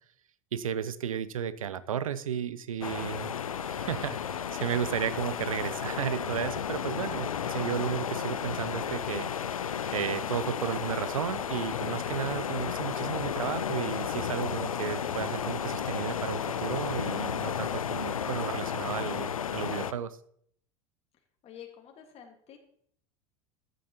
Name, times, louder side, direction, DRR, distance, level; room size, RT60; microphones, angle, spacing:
voice 1, 0.5-3.3 3.6-9.3 9.9-20.2, right 8 dB, 80° right, 16 dB, 0.6 m, -33 dB
sound 1, 2.8-19.9, left 8 dB, 85° left, 0.5 m, -33 dB
voice 2, 21.4-22.6, left 9 dB, 35° left, 2 dB, 1.8 m, -48 dB
14.5 x 9.3 x 2.9 m, 0.66 s
hypercardioid pair, 85°, 17 cm